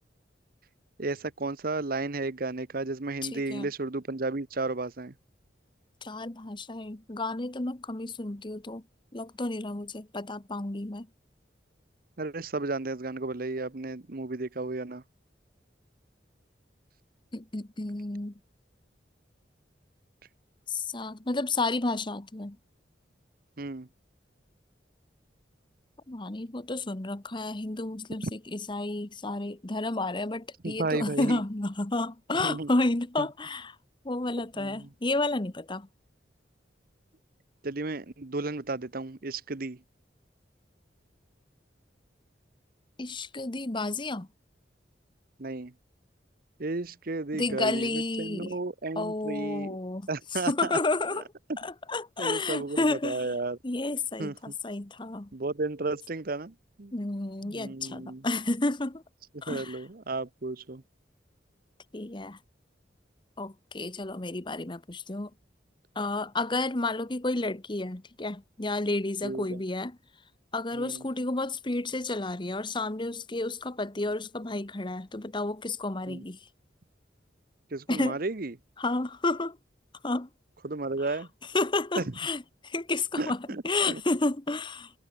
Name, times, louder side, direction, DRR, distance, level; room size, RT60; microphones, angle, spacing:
voice 1, 1.0-5.1 12.2-15.0 23.6-23.9 30.6-31.4 32.4-32.7 33.2-33.3 34.6-34.9 37.6-39.8 45.4-45.7 46.6-49.8 50.1-50.7 52.2-53.6 54.2-54.3 55.3-56.9 57.4-58.2 59.5-60.8 69.2-69.6 70.7-71.0 76.1-76.2 77.7-78.5 80.6-81.3 82.0-82.1 83.2-84.0, right 3 dB, 50° right, 1.0 m, -33 dB
voice 2, 3.2-3.7 6.0-8.8 9.1-11.1 17.3-18.4 20.7-22.6 26.1-33.8 34.0-35.9 43.0-44.3 47.3-48.5 49.0-51.2 51.6-53.4 53.6-55.3 56.9-59.0 59.4-59.8 61.9-62.4 63.4-65.3 65.9-70.0 70.5-76.4 77.9-78.2 78.8-79.6 80.0-80.3 81.0-81.2 81.5-84.9, left 2 dB, 25° left, 1.1 m, -31 dB
head